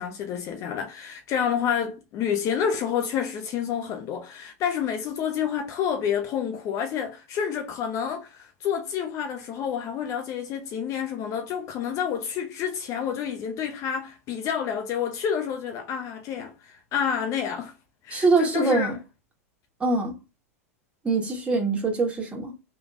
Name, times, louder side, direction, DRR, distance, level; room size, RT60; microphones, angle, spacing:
voice 1, 0.0-17.7 18.0-19.0, left 8 dB, 40° left, 0.6 m, -29 dB
voice 2, 18.1-19.0 19.8-20.1 21.0-22.5, right 3 dB, 15° right, 1.6 m, -23 dB
3.3 x 3.1 x 2.5 m
hypercardioid pair, 95°, 8 cm